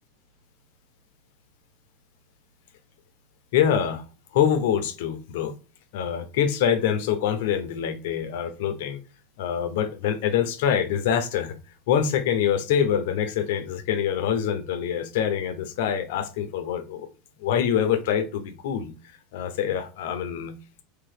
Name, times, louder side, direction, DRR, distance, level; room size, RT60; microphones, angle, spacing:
voice 1, 3.5-4.0 4.3-5.5 5.9-9.0 9.4-11.6 11.9-17.1 17.4-18.9 19.3-20.5, left 8 dB, 75° left, 9 dB, 0.7 m, -25 dB
3.3 x 2.8 x 3.2 m, 0.35 s
supercardioid pair, 110°, 0 cm